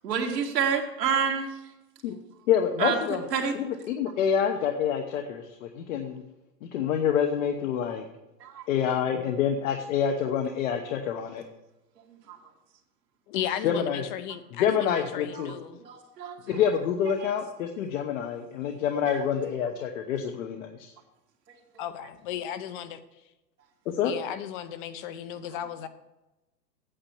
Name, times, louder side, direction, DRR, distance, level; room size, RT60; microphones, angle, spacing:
voice 1, 0.0-1.5 2.8-3.0 3.3-3.6 8.4-8.7 12.1-12.4 15.3-16.4 19.1-19.2, right 7 dB, 75° right, 1 dB, 2.3 m, -28 dB
voice 2, 2.5-3.2 3.6-6.2 6.6-8.0 8.7-11.4 13.6-14.0 14.6-15.5 16.5-20.9 23.9-24.1, left 8 dB, 50° left, 4 dB, 1.0 m, -27 dB
voice 3, 13.3-15.8 21.8-23.0 24.0-25.9, left 10 dB, 30° left, 12 dB, 0.7 m, -35 dB
8.8 x 7.0 x 7.1 m, 0.98 s
hypercardioid pair, 130°, 49 cm